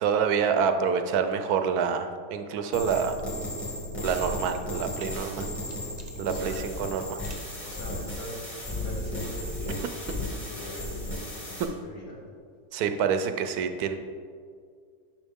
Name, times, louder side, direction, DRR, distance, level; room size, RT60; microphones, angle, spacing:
voice 1, 0.0-3.2 4.0-5.5 6.2-7.2 12.7-14.0, right 7 dB, 75° right, 8 dB, 1.1 m, -27 dB
sound 1, 2.7-11.6, left 1 dB, 20° left, 2.0 m, -35 dB
sound 2, 4.5-6.5 7.2-7.5, right 3 dB, 35° right, 0.8 m, -52 dB
voice 2, 5.9-6.6 7.6-12.2, left 1 dB, 65° left, -4 dB, 2.1 m, -41 dB
10.0 x 6.0 x 3.6 m, 2.1 s
omnidirectional pair, 1.6 m